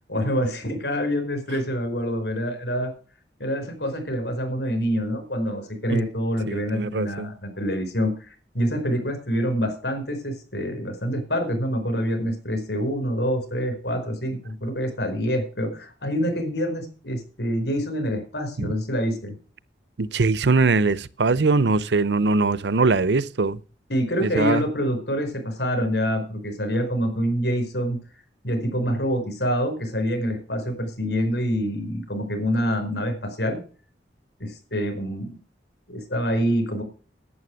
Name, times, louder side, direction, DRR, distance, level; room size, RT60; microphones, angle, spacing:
voice 1, 0.1-2.9 3.4-19.3 23.9-28.0 28.4-33.6 34.4-35.3 35.9-36.8, equal, 75° left, 4.9 m, -26 dB
voice 2, 6.5-7.3 18.6-18.7 20.0-23.6 24.2-24.6, right 3 dB, 80° right, 0.7 m, -21 dB
11.0 x 9.1 x 6.3 m
head